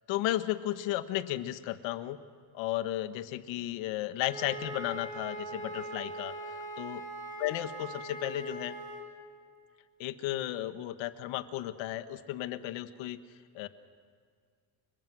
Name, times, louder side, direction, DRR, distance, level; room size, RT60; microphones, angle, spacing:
voice 1, 0.1-2.2 2.5-6.3 6.8-7.0 7.4-8.7 10.0-13.2 13.5-13.7, left 14 dB, 80° left, 11 dB, 1.5 m, -34 dB
Wind instrument woodwind instrument, 4.2-9.1, right 1 dB, 15° left, 5.3 m, -41 dB
30.0 x 24.5 x 6.2 m, 2.1 s
cardioid pair, 150°, 45 cm